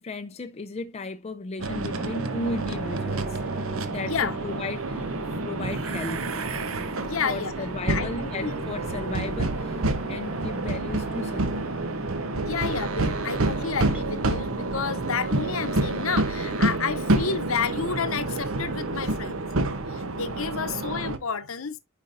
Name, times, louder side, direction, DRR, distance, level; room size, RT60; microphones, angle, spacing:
voice 1, 0.0-3.4 3.9-6.3 7.2-11.7 20.4-20.5, left 3 dB, 30° left, 0.4 m, -35 dB
sound 1, 1.6-14.0, right 1 dB, 5° right, 0.8 m, -42 dB
sound 2, 1.6-21.2, right 2 dB, 75° right, 0.9 m, -28 dB
voice 2, 4.0-4.4 7.0-7.5 7.9-8.9 12.4-19.5 19.9-21.8, left 6 dB, 75° left, 0.9 m, -30 dB
9.4 x 5.1 x 2.6 m
head